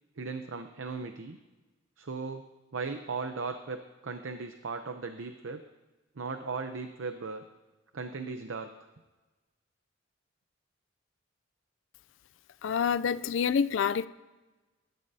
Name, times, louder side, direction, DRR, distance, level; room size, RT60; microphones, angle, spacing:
voice 1, 0.2-1.4 2.0-2.4 2.7-5.6 6.2-7.4 7.9-8.7, right 4 dB, 75° right, 7 dB, 0.7 m, -37 dB
voice 2, 12.6-14.1, left 7 dB, 65° left, 15 dB, 0.4 m, -27 dB
21.0 x 12.0 x 2.7 m, 1.2 s
head